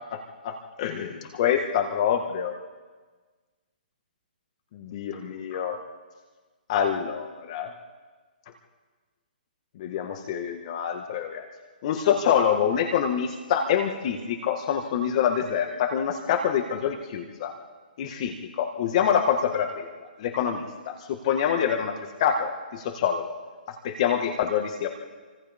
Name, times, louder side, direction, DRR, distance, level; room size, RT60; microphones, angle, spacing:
voice 1, 0.8-2.5 4.7-5.8 6.7-7.7 9.8-11.4 11.8-17.5 18.0-19.9 20.2-20.9 21.2-21.9 22.2-23.2 23.8-24.9, left 8 dB, 40° left, 4 dB, 1.7 m, -26 dB
29.0 x 25.0 x 3.7 m, 1.4 s
hypercardioid pair, 160°, 5 cm